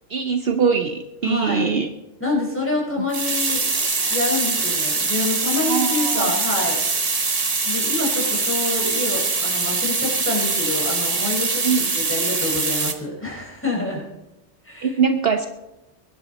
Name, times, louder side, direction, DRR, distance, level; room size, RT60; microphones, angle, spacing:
voice 1, 0.1-1.9 5.6-6.3 11.6-11.9 14.8-15.5, right 6 dB, 55° right, 6 dB, 1.0 m, -22 dB
voice 2, 1.2-1.8 2.2-3.7 4.1-6.8 7.6-14.0 14.6-15.0, left 2 dB, 10° left, -3 dB, 4.9 m, -27 dB
sound 1, 3.1-12.9, right 3 dB, 30° right, 1.1 m, -23 dB
22.5 x 11.0 x 4.1 m, 0.96 s
omnidirectional pair, 1.3 m